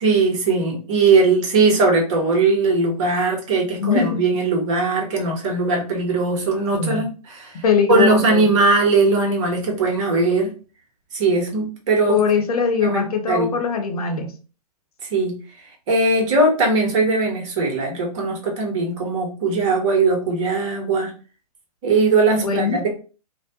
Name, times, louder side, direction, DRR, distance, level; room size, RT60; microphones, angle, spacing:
voice 1, 0.0-7.5 7.9-10.5 11.1-12.2 12.8-13.5 15.1-15.4 15.9-21.1 21.8-22.9, right 3 dB, 50° right, 0 dB, 1.1 m, -19 dB
voice 2, 3.8-4.2 6.7-7.1 7.5-8.4 12.1-14.3 22.4-22.8, left 6 dB, 70° left, 5 dB, 0.8 m, -21 dB
2.6 x 2.1 x 2.8 m, 0.35 s
hypercardioid pair, 115°, 20 cm